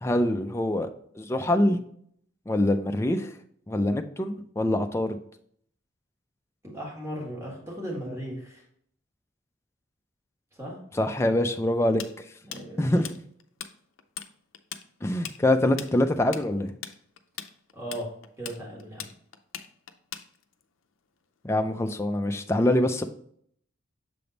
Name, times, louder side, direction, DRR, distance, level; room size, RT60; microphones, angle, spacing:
voice 1, 0.0-0.9 1.2-1.8 2.5-3.3 3.7-5.2 10.9-12.0 12.8-13.1 15.0-16.7 21.4-23.0, left 1 dB, 15° left, 6 dB, 0.3 m, -24 dB
voice 2, 6.7-8.6 10.6-10.8 12.4-12.9 17.7-18.1 18.4-19.1, equal, 15° right, -3 dB, 1.5 m, -36 dB
Tools, 12.0-13.7 14.0-14.3 14.5-20.6, left 10 dB, 80° left, 0.5 m, -39 dB
6.9 x 3.5 x 3.9 m, 0.65 s
head